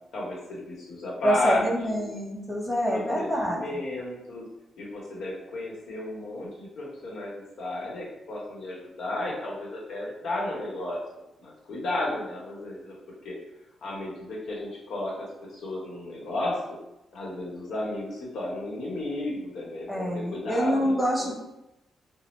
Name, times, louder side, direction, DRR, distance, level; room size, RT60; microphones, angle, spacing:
voice 1, 0.1-1.6 1.9-2.1 2.9-4.5 4.8-11.0 11.4-13.0 13.2-13.4 13.8-16.6 17.1-21.3, left 2 dB, 70° left, -4 dB, 0.9 m, -33 dB
voice 2, 1.2-3.6 19.9-21.3, equal, 5° right, -4 dB, 0.7 m, -26 dB
4.1 x 2.0 x 3.0 m, 0.94 s
wide cardioid pair, 160°, 0 cm